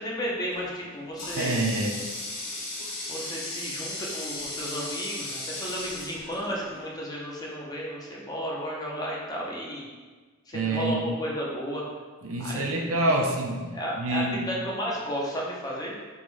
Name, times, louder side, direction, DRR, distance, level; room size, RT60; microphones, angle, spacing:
voice 1, 0.0-1.5 3.1-9.9 10.5-11.8 12.4-12.8 13.0-13.1 13.7-15.9, equal, 20° left, -4 dB, 0.8 m, -33 dB
Water tap faucet, 0.5-7.0, left 2 dB, 60° left, 1.2 m, -36 dB
voice 2, 1.4-2.1 10.5-11.1 12.2-14.5, right 2 dB, 80° right, 1 dB, 0.6 m, -27 dB
3.6 x 3.1 x 4.7 m, 1.4 s
head